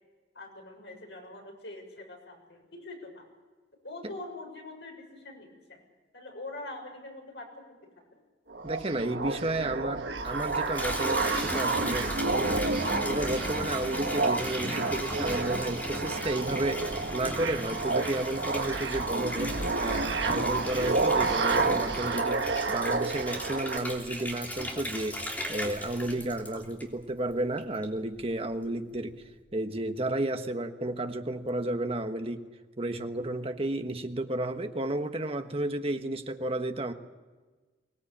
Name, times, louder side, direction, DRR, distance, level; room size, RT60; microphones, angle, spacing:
voice 1, 0.4-3.2 3.8-5.8 6.1-8.2, left 2 dB, 75° left, 2 dB, 7.1 m, -44 dB
sound 1, 8.5-23.8, right 3 dB, 80° right, 1.6 m, -30 dB
voice 2, 8.6-12.6 13.0-25.2 25.5-29.2 29.5-32.5 32.8-36.9, right 1 dB, 35° right, 6 dB, 1.4 m, -32 dB
Water tap faucet / Bathtub (filling or washing), 10.2-27.1 27.6-28.2, equal, 10° left, 3.2 m, -37 dB
24.0 x 19.0 x 8.7 m, 1.3 s
head